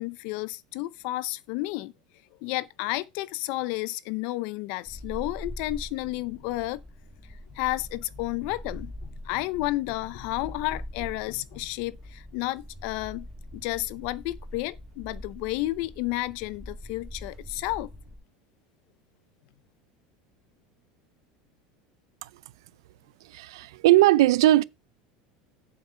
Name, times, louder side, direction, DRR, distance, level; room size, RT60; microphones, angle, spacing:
voice 1, 0.0-1.9 2.4-6.8 7.5-13.3 13.5-17.9, left 18 dB, 45° left, 0.6 m, -31 dB
sound 1, 4.8-18.2, left 1 dB, 5° left, 5.0 m, -43 dB
voice 2, 23.2-24.6, right 15 dB, 85° right, 0.5 m, -19 dB
8.3 x 7.5 x 4.4 m
supercardioid pair, 180°, 2 cm